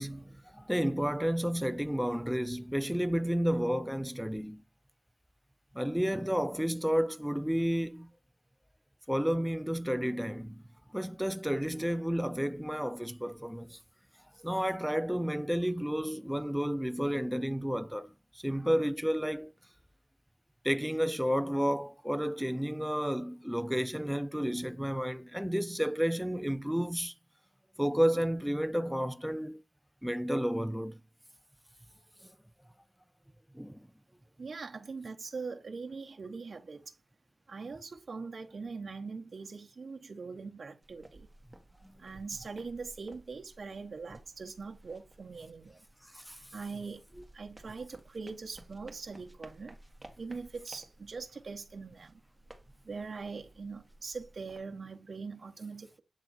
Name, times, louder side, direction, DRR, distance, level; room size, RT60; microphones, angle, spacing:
voice 1, 0.0-4.6 5.7-8.1 9.1-10.6 10.9-13.8 14.4-19.5 20.6-27.1 27.8-29.6 30.0-31.0 33.5-33.9 41.8-41.9 46.1-46.4, equal, 5° right, 0.5 m, -31 dB
voice 2, 34.4-36.9 37.5-41.3 42.0-45.8 46.5-47.0 47.3-49.7 50.2-52.2 52.8-56.0, right 4 dB, 65° right, 0.9 m, -42 dB
sound 1, 40.8-54.6, right 1 dB, 20° right, 1.9 m, -56 dB
8.3 x 3.6 x 4.2 m
cardioid pair, 65°, 0 cm